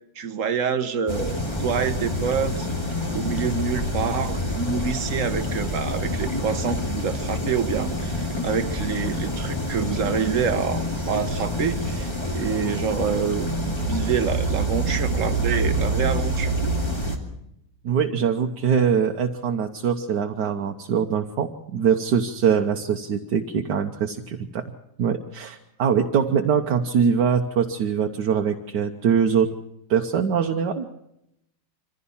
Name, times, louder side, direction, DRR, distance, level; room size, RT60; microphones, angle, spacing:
voice 1, 0.2-2.7 3.1-16.5, right 6 dB, 50° right, 11 dB, 1.4 m, -27 dB
sound 1, 1.1-17.2, equal, 15° left, 2.2 m, -27 dB
voice 2, 17.8-24.7 25.0-29.5 29.9-30.9, right 7 dB, 75° right, 3 dB, 1.5 m, -23 dB
24.5 x 15.5 x 7.2 m, 0.80 s
omnidirectional pair, 1.9 m